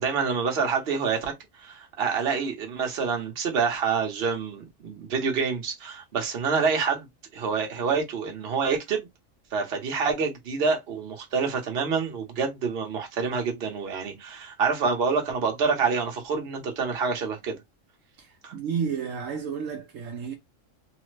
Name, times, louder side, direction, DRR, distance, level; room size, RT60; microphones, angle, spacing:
voice 1, 0.0-1.3 1.6-7.1 7.3-9.1 9.5-17.6 18.4-18.5, right 5 dB, 50° right, 1.1 m, -27 dB
voice 2, 18.2-20.3, right 6 dB, 75° right, 1.0 m, -31 dB
3.2 x 2.0 x 3.1 m
omnidirectional pair, 1.4 m